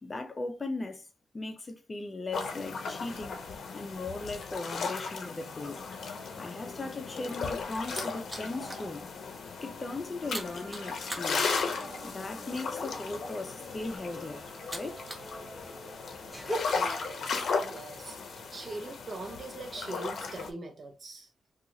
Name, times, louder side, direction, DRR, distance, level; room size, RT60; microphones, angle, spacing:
voice 1, 0.0-1.1 1.3-5.8 6.4-9.0 9.6-11.5 12.0-14.4 14.7-15.0, left 2 dB, 30° left, 0.5 m, -38 dB
sound 1, 2.3-20.5, left 4 dB, 75° left, 0.6 m, -36 dB
sound 2, 7.9-8.9 9.3-9.5 9.7-15.3 15.6-16.6, right 1 dB, 15° right, 0.7 m, -41 dB
sound 3, 10.2-17.0, right 3 dB, 80° right, 0.8 m, -52 dB
voice 2, 16.7-21.3, right 3 dB, 50° right, 0.7 m, -42 dB
2.9 x 2.3 x 3.8 m
wide cardioid pair, 135°, 0 cm